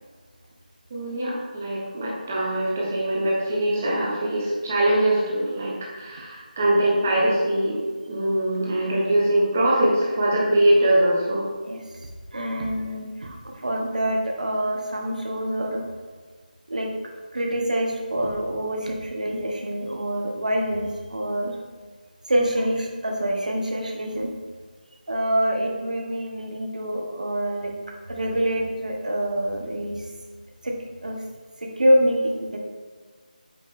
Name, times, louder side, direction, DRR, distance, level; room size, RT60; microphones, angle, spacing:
voice 1, 0.9-11.5 12.9-13.0, right 1 dB, 15° right, -3 dB, 0.9 m, -22 dB
voice 2, 12.3-15.8 16.7-16.9 17.3-21.5 22.3-24.3 25.1-27.7 28.1-30.0 30.6-30.7 31.0-31.2 31.8-32.6, equal, 55° right, 1 dB, 1.4 m, -25 dB
8.2 x 4.9 x 3.4 m, 1.5 s
figure-of-eight pair, 180°, 5 cm